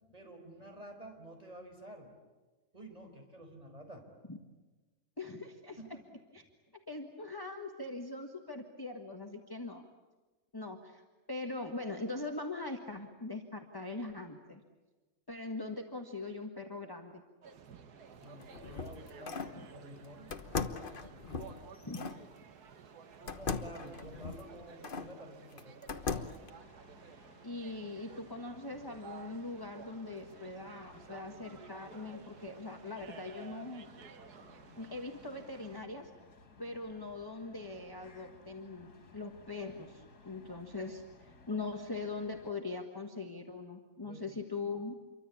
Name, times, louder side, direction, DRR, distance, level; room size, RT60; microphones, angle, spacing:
voice 1, 0.1-2.1 2.7-4.1 5.8-6.0 18.2-20.3 20.8-21.7 23.2-25.8 44.0-44.3, right 1 dB, 25° right, 3 dB, 5.0 m, -51 dB
voice 2, 5.2-5.8 6.3-6.4 6.9-9.9 10.5-11.0 11.3-14.6 15.3-17.2 21.8-22.1 27.4-33.9 34.8-36.1 36.6-44.9, left 3 dB, 15° left, 3 dB, 1.6 m, -41 dB
sound 1, 17.4-35.8, right 6 dB, 85° right, 1.8 m, -54 dB
sound 2, 18.2-19.6 20.3-22.2 23.3-25.1 25.6-26.5, left 5 dB, 40° left, 1.2 m, -39 dB
sound 3, 26.4-42.5, left 3 dB, 80° left, 3.0 m, -59 dB
27.5 x 24.0 x 8.6 m, 1.3 s
omnidirectional pair, 1.6 m